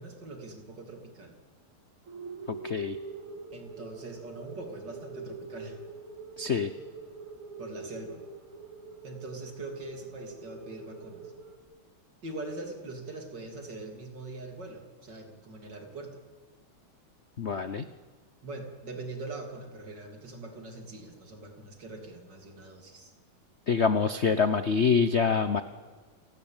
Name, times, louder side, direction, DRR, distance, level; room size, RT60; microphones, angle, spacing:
voice 1, 0.0-1.3 3.5-5.8 7.6-8.2 9.0-11.3 12.2-16.2 18.4-23.1, right 2 dB, 50° right, 4 dB, 3.7 m, -42 dB
sound 1, 2.0-11.6, right 4 dB, 70° right, 3.4 m, -44 dB
voice 2, 2.5-3.0 6.4-6.7 17.4-17.9 23.7-25.6, left 5 dB, 50° left, 11 dB, 0.8 m, -25 dB
29.0 x 18.0 x 9.0 m, 1.5 s
omnidirectional pair, 2.4 m